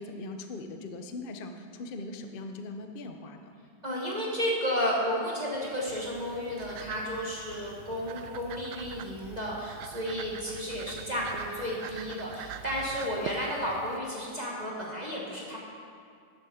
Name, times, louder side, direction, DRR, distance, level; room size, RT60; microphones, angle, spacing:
voice 1, 0.0-3.5, left 2 dB, 85° left, 5 dB, 0.4 m, -40 dB
voice 2, 3.8-15.6, equal, 25° right, -4 dB, 1.5 m, -32 dB
sound 1, 5.5-14.0, right 9 dB, 75° right, 0.9 m, -44 dB
11.0 x 7.2 x 7.0 m, 2.3 s
omnidirectional pair, 2.2 m